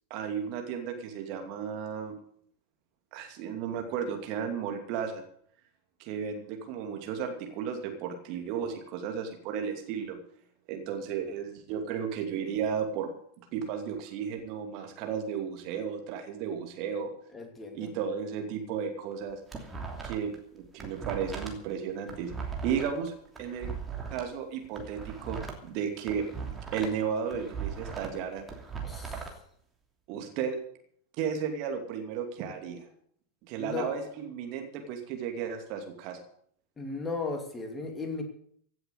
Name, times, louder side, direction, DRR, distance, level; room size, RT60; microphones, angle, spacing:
voice 1, 0.1-2.2 3.1-5.2 6.0-10.2 10.7-13.1 13.5-17.1 17.7-19.4 20.0-22.3 22.6-23.1 23.4-23.7 24.1-26.3 26.7-28.5 30.1-30.6 31.2-32.9 33.4-36.2, right 7 dB, 40° right, 4 dB, 2.7 m, -34 dB
voice 2, 17.3-17.9 28.8-29.2 33.6-34.0 36.8-38.2, left 4 dB, 15° left, 4 dB, 2.7 m, -36 dB
sound 1, 19.1-20.4 20.6-24.2 24.6-27.0 27.3-29.3, right 5 dB, 15° right, 2.9 m, -38 dB
16.5 x 7.8 x 8.3 m, 0.63 s
figure-of-eight pair, 90°, 0 cm